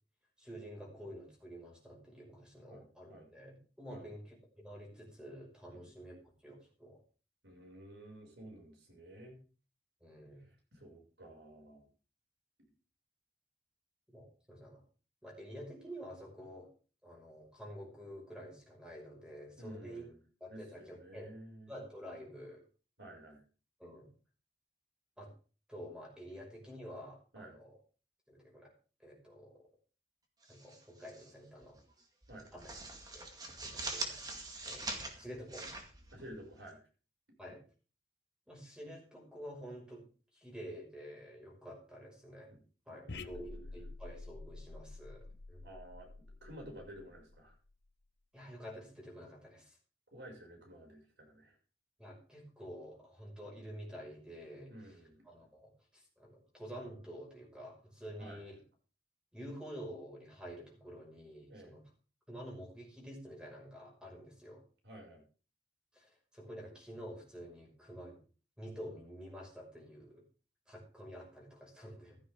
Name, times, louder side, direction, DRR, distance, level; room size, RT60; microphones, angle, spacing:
voice 1, 0.4-6.1 6.4-7.0 10.0-10.5 14.1-14.8 15.2-16.7 17.0-20.0 20.4-21.3 21.7-22.6 23.8-24.1 25.2-25.3 25.7-27.8 28.3-28.7 29.0-29.7 30.5-31.8 32.5-32.7 33.1-33.2 33.6-34.2 34.6-35.7 37.4-37.6 38.5-40.1 40.3-42.5 42.9-45.7 48.3-49.8 52.0-55.0 55.2-58.6 59.3-61.8 62.3-64.6 65.9-68.2 68.6-70.2 70.7-72.2, equal, 5° right, -1 dB, 5.9 m, -49 dB
voice 2, 2.7-3.3 3.9-4.1 5.7-5.9 7.4-9.4 10.7-11.9 19.6-20.2 20.5-21.7 23.0-23.4 27.3-27.6 32.3-32.5 36.1-36.8 42.5-42.6 42.9-43.6 45.6-46.1 46.4-47.5 50.1-51.6 54.7-55.2 58.2-58.4 61.5-61.7 64.8-65.2, right 1 dB, 80° right, 1 dB, 6.5 m, -52 dB
sound 1, 30.4-31.3 31.6-31.8 32.2-36.7, right 2 dB, 20° right, 2.2 m, -43 dB
sound 2, 43.1-47.7, left 3 dB, 70° left, 0.8 m, -49 dB
15.5 x 13.0 x 3.8 m, 0.38 s
head